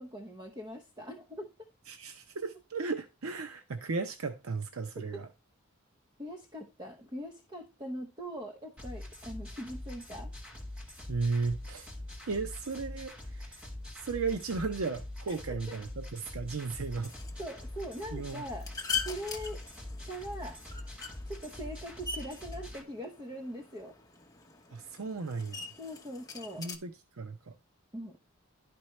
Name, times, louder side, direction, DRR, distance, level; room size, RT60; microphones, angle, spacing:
voice 1, 0.0-1.7 5.1-5.2 6.2-10.3 15.3-15.6 17.4-18.7 19.0-19.6 20.1-20.6 21.3-23.9 25.8-26.7 27.9-28.2, equal, 20° right, 0.8 m, -41 dB
voice 2, 1.9-5.3 11.1-11.9 12.3-13.6 13.9-17.1 18.1-18.4 24.7-25.7 26.6-27.5, right 4 dB, 75° right, 0.7 m, -35 dB
sound 1, 8.8-22.8, left 1 dB, 5° right, 1.4 m, -44 dB
sound 2, 17.0-26.8, left 6 dB, 15° left, 0.8 m, -42 dB
11.5 x 4.6 x 3.1 m
head